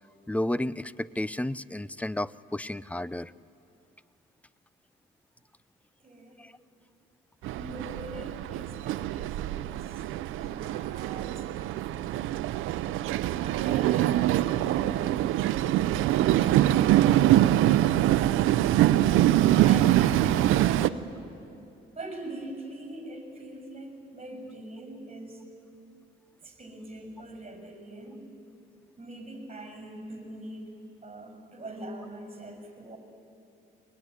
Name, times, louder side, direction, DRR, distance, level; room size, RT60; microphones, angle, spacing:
voice 1, 0.3-3.3 6.4-6.5, left 1 dB, 5° left, 18 dB, 0.5 m, -32 dB
voice 2, 6.0-6.4 7.5-12.3 13.1-14.3 17.9-21.2 21.9-25.4 26.4-28.3 29.0-30.7 31.0-33.0, right 1 dB, 30° right, 4 dB, 6.4 m, -43 dB
Train, 7.4-20.9, right 13 dB, 90° right, 0.6 m, -24 dB
22.0 x 21.0 x 9.9 m, 2.6 s
cardioid pair, 90°, 20 cm